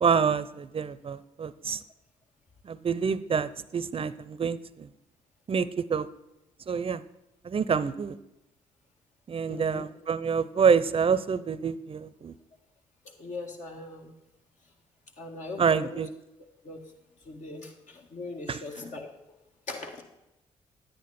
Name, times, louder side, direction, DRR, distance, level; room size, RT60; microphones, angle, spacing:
voice 1, 0.0-1.8 2.6-4.9 5.5-6.1 6.7-7.0 7.4-8.2 9.3-12.3 15.6-16.1 18.5-18.6, right 6 dB, 40° right, 16 dB, 0.6 m, -27 dB
voice 2, 9.5-9.8 13.2-14.1 15.2-16.0 16.6-16.8 17.3-19.1 19.7-20.0, left 3 dB, 60° left, 2 dB, 2.0 m, -39 dB
10.0 x 9.4 x 4.3 m, 0.92 s
supercardioid pair, 55°, 14 cm